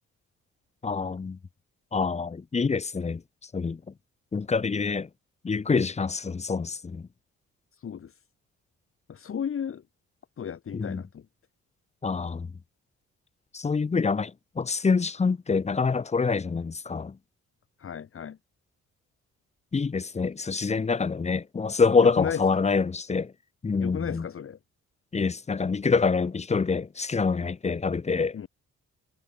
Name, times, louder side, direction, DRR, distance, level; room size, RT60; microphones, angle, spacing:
voice 1, 0.8-1.4 1.9-3.2 3.5-3.8 4.3-5.1 5.4-7.1 10.7-11.0 12.0-12.5 13.5-17.2 19.7-23.3 23.6-24.3 25.1-28.4, left 4 dB, 20° left, 0.8 m, -26 dB
voice 2, 9.1-9.8 10.4-11.2 17.8-18.4 22.0-22.4 23.8-24.6 28.3-28.5, left 8 dB, 45° left, 1.7 m, -34 dB
cardioid pair, 90°, 30 cm